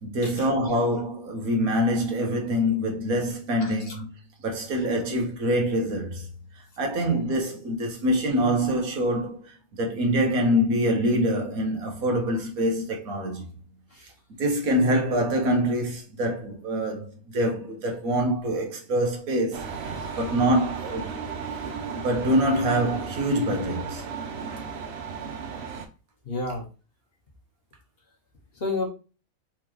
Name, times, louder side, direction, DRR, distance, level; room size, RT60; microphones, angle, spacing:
voice 1, 0.0-4.1 4.4-6.3 6.8-13.5 14.4-21.1 21.9-24.0, equal, 75° right, 1.6 m, -25 dB
voice 2, 3.6-4.0 13.9-14.1 19.9-20.1 21.5-21.7 26.2-26.7 28.6-28.8, left 3 dB, 45° left, 1.1 m, -32 dB
sound 1, 19.5-25.9, right 6 dB, 55° right, 0.9 m, -35 dB
4.3 x 3.7 x 3.1 m
omnidirectional pair, 1.5 m